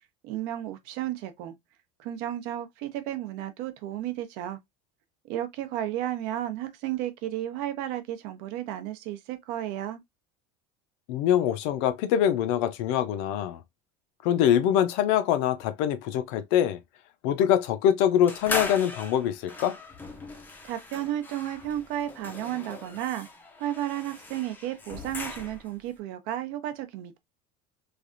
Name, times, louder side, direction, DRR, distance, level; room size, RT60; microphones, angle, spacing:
voice 1, 0.2-1.5 2.0-4.6 5.2-10.0 20.6-23.3 23.6-27.2, right 12 dB, 60° right, 0.6 m, -33 dB
voice 2, 11.1-13.6 14.2-16.8 17.2-19.8, left 10 dB, 65° left, 0.5 m, -24 dB
sound 1, 18.3-25.8, left 3 dB, 10° left, 0.5 m, -38 dB
3.2 x 2.4 x 2.4 m
cardioid pair, 165°, 18 cm